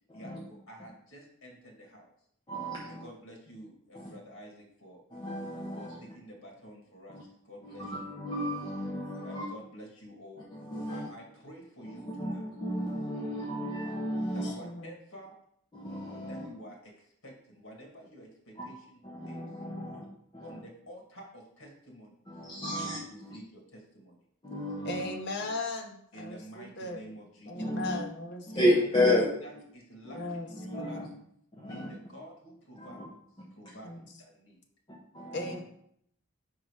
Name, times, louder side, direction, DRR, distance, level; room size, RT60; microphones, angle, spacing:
voice 1, 0.1-2.1 2.9-5.0 5.7-7.2 7.5-8.1 9.2-10.5 10.9-12.5 14.3-15.3 16.3-16.9 17.2-19.4 20.4-22.1 22.8-23.0 23.3-24.2 26.1-27.5 28.6-28.7 29.1-31.1 31.6-33.0 33.6-34.6, equal, 80° left, 1 dB, 1.8 m, -49 dB
voice 2, 2.5-3.0 3.9-4.1 5.1-6.0 7.1-7.2 7.6-9.4 10.5-11.1 11.8-14.5 15.7-16.5 18.6-18.7 19.0-20.0 20.4-20.6 22.3-23.4 24.4-25.1 25.4-25.5 27.5-28.0 28.5-29.2 30.0-31.1 31.6-31.9 32.8-33.0 35.1-35.6, left 1 dB, 20° left, -5 dB, 0.9 m, -32 dB
voice 3, 14.3-14.9 24.8-27.0 27.5-28.7 30.1-30.5 30.8-31.1 33.8-34.0 35.3-35.6, left 2 dB, 55° left, 3 dB, 0.9 m, -38 dB
5.4 x 3.7 x 4.8 m, 0.70 s
head